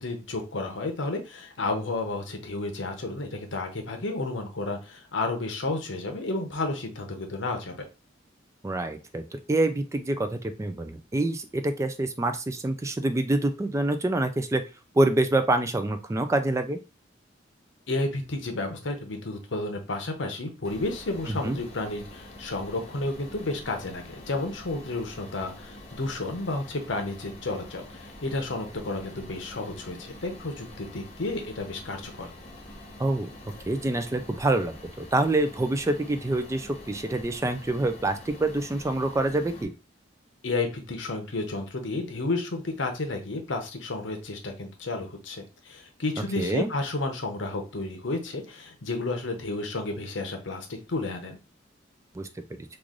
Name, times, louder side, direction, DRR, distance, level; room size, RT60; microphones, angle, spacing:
voice 1, 0.0-7.9 17.9-32.3 40.4-51.4, left 2 dB, 80° left, 5 dB, 0.9 m, -32 dB
voice 2, 8.6-14.6 14.9-16.8 21.3-21.6 33.0-33.3 33.7-39.7 46.4-46.7 52.1-52.3, right 2 dB, 15° right, 8 dB, 0.3 m, -26 dB
sound 1, 20.6-39.6, left 1 dB, 35° left, 1.0 m, -46 dB
3.1 x 2.4 x 3.7 m, 0.30 s
head